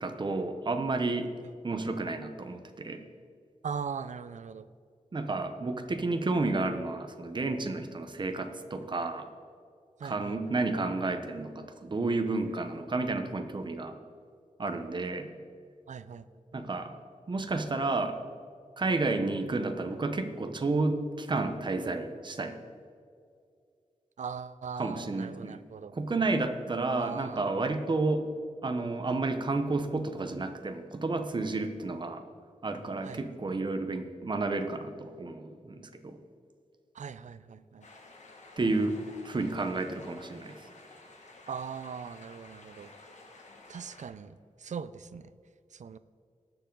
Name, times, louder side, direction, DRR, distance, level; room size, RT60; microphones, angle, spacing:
voice 1, 0.0-1.3 1.6-3.0 5.1-9.3 10.0-14.0 14.6-15.3 16.5-16.9 17.3-18.2 18.8-22.6 24.8-25.6 25.9-28.3 28.6-32.2 32.6-36.2 38.6-39.0 39.2-40.6, right 3 dB, 40° right, 7 dB, 0.9 m, -31 dB
voice 2, 3.6-4.7 10.0-10.5 12.5-12.6 15.9-16.3 24.2-25.9 26.9-27.5 33.0-33.2 36.9-37.9 41.5-42.9 43.7-45.3 45.7-46.0, right 6 dB, 70° right, 14 dB, 0.5 m, -40 dB
sound 1, 37.8-44.1, left 2 dB, 70° left, 1.9 m, -53 dB
19.0 x 6.9 x 3.9 m, 2.3 s
wide cardioid pair, 125°, 13 cm